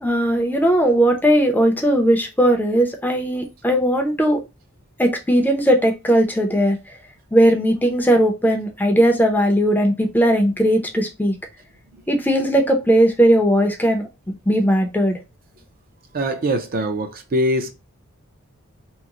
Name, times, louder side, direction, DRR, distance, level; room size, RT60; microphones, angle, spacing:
voice 1, 0.0-4.4 5.0-6.8 7.3-11.3 12.1-14.1 14.5-15.2, right 1 dB, 10° left, 0.5 m, -18 dB
voice 2, 16.1-17.7, equal, 40° right, 0.5 m, -22 dB
2.9 x 2.1 x 3.6 m
head